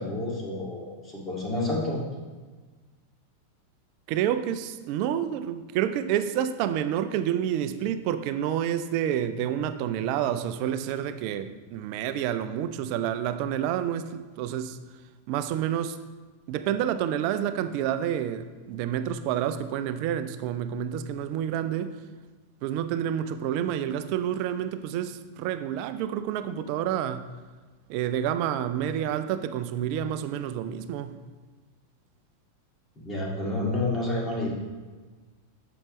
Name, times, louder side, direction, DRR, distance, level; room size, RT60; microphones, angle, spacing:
voice 1, 0.0-2.0 33.0-34.5, left 2 dB, 20° left, -3 dB, 2.1 m, -29 dB
voice 2, 4.1-14.8 15.3-16.0 16.5-22.0 22.6-27.3 27.9-31.2, right 10 dB, 45° right, 12 dB, 0.4 m, -29 dB
8.5 x 6.9 x 3.1 m, 1.3 s
figure-of-eight pair, 90°, 0 cm